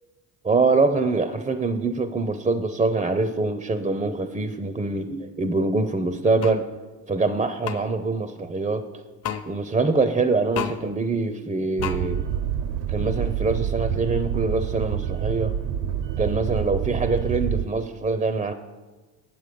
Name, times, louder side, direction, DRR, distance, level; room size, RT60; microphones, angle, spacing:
voice 1, 0.4-6.7 7.1-8.8 9.5-12.2 12.9-15.5 16.2-18.5, right 3 dB, 15° right, 10 dB, 0.5 m, -24 dB
sound 1, 6.4-6.6 7.6-7.8 9.2-9.4 10.5-10.8 11.8-12.0, left 8 dB, 40° left, 0.8 m, -29 dB
sound 2, 11.8-17.6, right 9 dB, 55° right, 0.6 m, -27 dB
8.5 x 7.2 x 5.1 m, 1.2 s
supercardioid pair, 85°, 40 cm